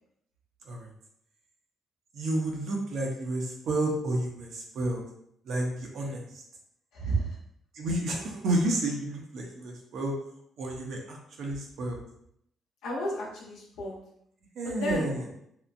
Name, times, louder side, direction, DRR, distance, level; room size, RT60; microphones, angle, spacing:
voice 1, 2.1-5.0 5.4-6.2 7.7-10.1 10.6-12.0 14.6-15.2, right 1 dB, 70° right, 0 dB, 0.7 m, -31 dB
voice 2, 6.9-7.4 12.8-14.0 14.6-15.1, right 1 dB, 85° left, -3 dB, 0.8 m, -32 dB
2.9 x 2.1 x 2.5 m, 0.71 s
cardioid pair, 90°, 0 cm